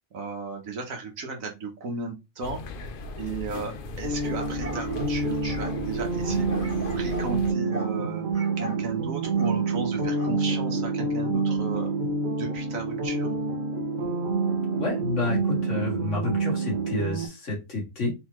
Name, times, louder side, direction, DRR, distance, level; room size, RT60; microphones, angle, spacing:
voice 1, 0.1-2.6 3.1-11.9 12.4-13.3, right 4 dB, 60° right, 2 dB, 1.4 m, -35 dB
sound 1, 2.4-7.5, left 3 dB, 80° left, 0.4 m, -38 dB
sound 2, 4.0-17.3, right 3 dB, 40° right, 0.9 m, -27 dB
sound 3, 4.1-5.8 6.5-7.3 7.7-8.0 8.3-8.8 9.4-9.6 10.2-10.4, equal, 10° right, 1.4 m, -39 dB
voice 2, 14.8-18.1, left 3 dB, 50° left, -2 dB, 2.0 m, -29 dB
4.1 x 3.9 x 3.0 m, 0.24 s
omnidirectional pair, 1.6 m